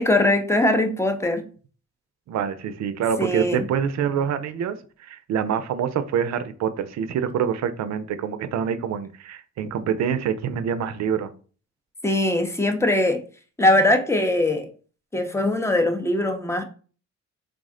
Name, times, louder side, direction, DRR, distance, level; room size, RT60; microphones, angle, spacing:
voice 1, 0.0-1.5 3.2-3.7 12.0-13.2 13.6-14.7 15.1-16.6, left 1 dB, 10° left, 0.6 m, -21 dB
voice 2, 2.3-11.3, right 8 dB, 65° right, 0.5 m, -26 dB
3.5 x 2.1 x 3.6 m
cardioid pair, 90°, 30 cm